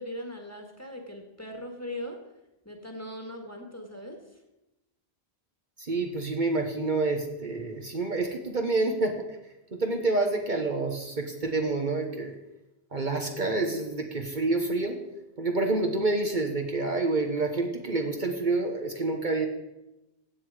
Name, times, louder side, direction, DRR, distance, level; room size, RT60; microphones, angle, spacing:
voice 1, 0.0-2.2 2.7-4.4, left 1 dB, 15° left, 3 dB, 1.7 m, -39 dB
voice 2, 5.8-9.2 9.7-12.3 12.9-15.0 15.4-19.5, right 3 dB, 45° right, 3 dB, 1.3 m, -28 dB
15.0 x 8.3 x 4.9 m, 0.95 s
omnidirectional pair, 1.1 m